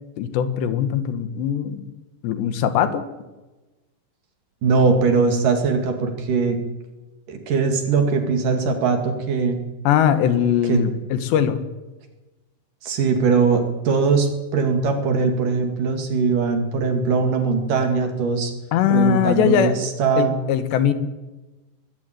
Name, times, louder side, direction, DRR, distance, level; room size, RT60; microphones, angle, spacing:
voice 1, 0.2-1.8 2.2-3.0 9.8-11.6 18.7-19.8 20.2-20.9, left 9 dB, 80° left, 11 dB, 3.6 m, -20 dB
voice 2, 4.6-6.6 7.3-9.6 10.6-10.8 12.8-18.5 18.9-20.3, right 5 dB, 55° right, 5 dB, 3.5 m, -21 dB
22.0 x 14.5 x 9.2 m, 1.1 s
omnidirectional pair, 4.9 m